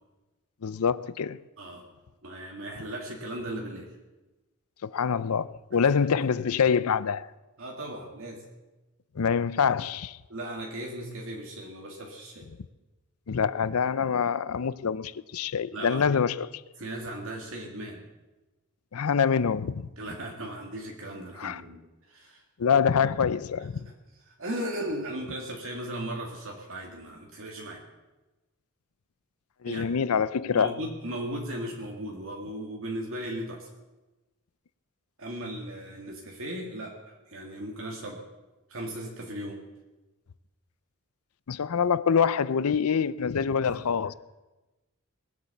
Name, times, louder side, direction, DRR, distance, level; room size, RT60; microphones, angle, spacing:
voice 1, 0.6-1.4 4.8-7.3 9.2-10.2 13.3-16.5 18.9-19.9 21.4-21.6 22.6-23.9 29.6-30.8 41.5-44.1, left 6 dB, 80° left, 0.5 m, -25 dB
voice 2, 2.2-3.9 5.8-5.9 7.6-8.4 10.3-12.5 15.7-16.3 16.8-18.0 20.0-22.4 22.9-23.1 23.8-23.9 24.3-27.8 29.7-33.7 35.2-38.2 38.7-39.6 43.7-43.8, right 1 dB, 65° right, 2.1 m, -37 dB
20.0 x 8.6 x 7.1 m
head